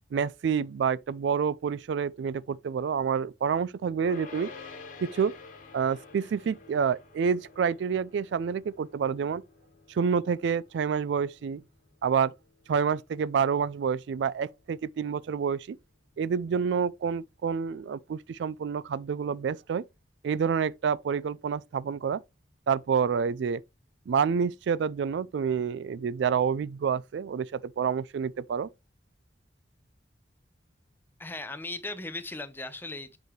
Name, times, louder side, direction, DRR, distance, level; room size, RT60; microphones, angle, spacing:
voice 1, 0.1-4.5 5.0-5.3 5.7-9.4 9.9-11.6 12.0-12.3 12.7-15.8 16.2-19.8 20.2-22.2 22.7-23.6 24.1-28.7, right 6 dB, 70° right, 0.3 m, -28 dB
sound 1, 4.0-15.3, left 4 dB, 45° left, 1.8 m, -50 dB
voice 2, 31.2-33.2, left 2 dB, 10° left, 0.7 m, -37 dB
7.9 x 4.8 x 3.2 m
head